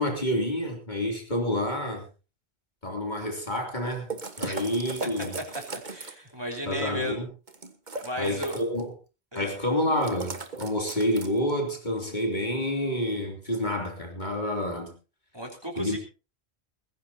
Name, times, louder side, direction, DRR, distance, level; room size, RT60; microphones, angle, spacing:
voice 1, 0.0-2.0 2.8-4.1 4.4-5.4 6.6-7.3 8.2-8.9 9.3-14.9 15.8-16.0, left 1 dB, 45° left, 1 dB, 3.3 m, -28 dB
sound 1, 4.1-6.3 7.5-8.8 10.0-11.5, right 3 dB, 45° right, 1.5 m, -37 dB
voice 2, 5.9-7.2 8.0-8.5 9.3-9.5 15.3-16.0, equal, 25° right, 2 dB, 3.6 m, -33 dB
20.5 x 15.5 x 2.8 m, 0.33 s
omnidirectional pair, 1.1 m